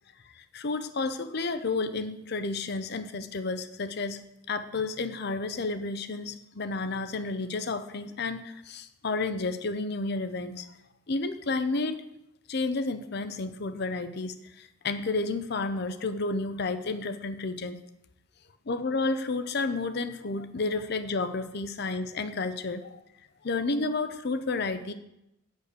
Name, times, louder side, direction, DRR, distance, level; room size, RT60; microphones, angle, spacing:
voice 1, 0.2-4.2 4.5-10.7 11.1-12.0 12.5-17.8 18.7-23.0 23.4-24.9, left 3 dB, 55° left, 11 dB, 0.6 m, -31 dB
9.0 x 6.8 x 8.2 m, 0.86 s
head